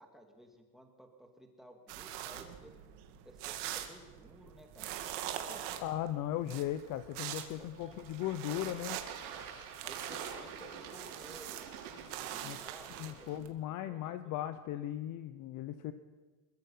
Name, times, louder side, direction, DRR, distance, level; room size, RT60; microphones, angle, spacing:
voice 1, 0.0-2.8 3.2-5.1 5.3-5.8 6.4-6.5 7.6-7.9 9.8-13.5 13.9-14.3, right 1 dB, ahead, 2 dB, 2.3 m, -56 dB
sound 1, 1.9-13.5, right 11 dB, 55° right, 2.2 m, -44 dB
voice 2, 5.8-9.0 12.4-12.6 13.0-15.9, left 12 dB, 40° left, 12 dB, 0.8 m, -37 dB
Bird / Water, 6.7-13.4, right 7 dB, 75° right, 7.4 m, -48 dB
22.0 x 21.5 x 5.6 m, 1.3 s
supercardioid pair, 155°, 49 cm